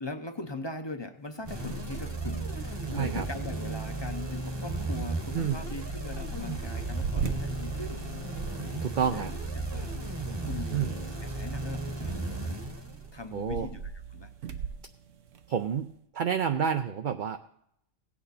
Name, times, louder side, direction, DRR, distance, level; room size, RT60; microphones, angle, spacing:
voice 1, 0.0-8.0 9.1-9.9 10.4-12.3 13.1-14.3, left 2 dB, 30° left, 7 dB, 0.6 m, -41 dB
sound 1, 1.2-16.0, right 6 dB, 75° right, 1.1 m, -43 dB
sound 2, 1.4-13.4, right 2 dB, 25° right, 1.0 m, -34 dB
voice 2, 2.9-3.3 5.3-5.6 8.8-9.3 10.7-10.9 13.3-13.7 15.5-15.9 16.1-17.4, right 7 dB, 55° right, 7 dB, 0.5 m, -28 dB
17.0 x 8.7 x 4.1 m, 0.74 s
omnidirectional pair, 1.3 m